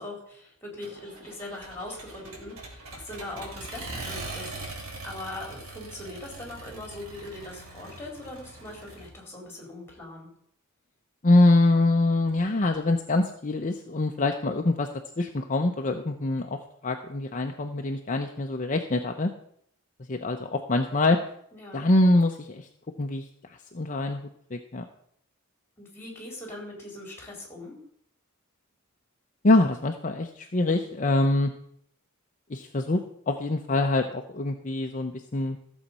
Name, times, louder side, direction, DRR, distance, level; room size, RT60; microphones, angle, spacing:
voice 1, 0.0-10.3 21.5-21.8 25.8-27.8, left 2 dB, 10° left, 0 dB, 4.1 m, -41 dB
Accelerating revving vroom, 0.8-9.1, right 2 dB, 75° right, 2.9 m, -41 dB
voice 2, 11.2-14.9 15.2-19.3 20.1-21.2 21.7-22.7 23.0-23.2 23.7-24.8 29.4-31.5 32.5-35.6, left 2 dB, 35° left, 4 dB, 0.7 m, -24 dB
14.5 x 7.3 x 5.5 m, 0.69 s
head